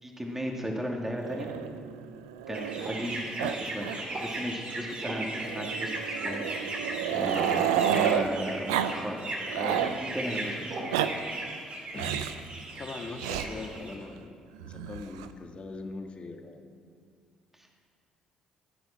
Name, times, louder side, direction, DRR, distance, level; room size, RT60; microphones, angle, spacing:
voice 1, 0.0-1.5 2.5-3.9 4.2-10.8 17.6-17.7, equal, 10° right, 0 dB, 2.6 m, -35 dB
Growling, 1.2-3.1 3.4-3.5 3.8-4.0 4.3-4.4 5.4-8.3 8.7-8.9 9.3-10.0 10.7-11.1 12.0-12.4 13.2-13.5 14.6-15.3, right 10 dB, 85° right, 0.5 m, -30 dB
sound 1, 2.5-14.0, right 2 dB, 50° right, 3.2 m, -37 dB
voice 2, 11.9-12.3 12.8-14.4 14.6-16.6, left 3 dB, 40° left, 4 dB, 1.7 m, -41 dB
17.5 x 9.4 x 6.1 m, 2.2 s
hypercardioid pair, 50°, 3 cm